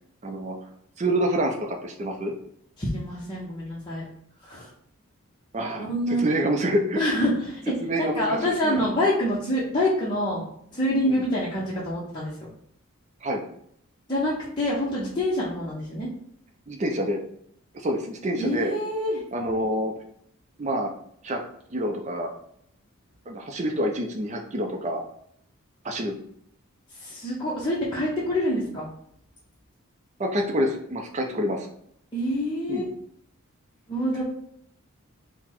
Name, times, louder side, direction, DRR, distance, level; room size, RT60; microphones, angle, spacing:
voice 1, 0.2-0.6 1.0-2.3 5.5-7.0 7.8-8.8 11.2-11.3 13.2-13.4 16.7-17.2 17.7-18.7 19.3-19.9 20.6-20.9 21.2-21.4 21.7-22.3 23.3-25.0 25.8-26.2 30.2-31.7 32.7-32.8, right 1 dB, 30° right, 2 dB, 0.5 m, -27 dB
voice 2, 2.8-4.0 4.4-4.7 5.8-6.2 7.0-7.6 8.1-10.4 10.7-12.5 14.1-16.1 18.4-19.2 26.9-28.9 32.1-32.8 33.9-34.2, left 1 dB, 20° left, -8 dB, 0.7 m, -26 dB
4.0 x 2.1 x 4.4 m, 0.68 s
head